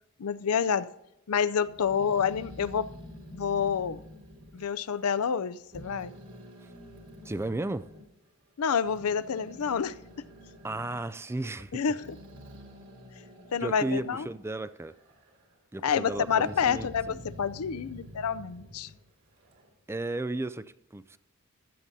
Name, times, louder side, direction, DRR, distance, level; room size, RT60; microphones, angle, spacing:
voice 1, 0.2-0.9 1.3-2.9 3.3-4.0 4.5-6.1 8.6-9.9 11.7-12.0 13.5-14.3 15.8-18.9, left 7 dB, 75° left, 0.5 m, -28 dB
Growling, 1.6-5.4 5.7-8.0 8.6-14.4 14.8-15.5 15.9-19.7, left 1 dB, 60° right, 3.1 m, -48 dB
voice 2, 7.2-7.9 10.6-12.0 13.6-15.0 15.7-17.2 19.9-21.2, right 2 dB, 10° right, 0.3 m, -34 dB
15.5 x 11.0 x 2.7 m
head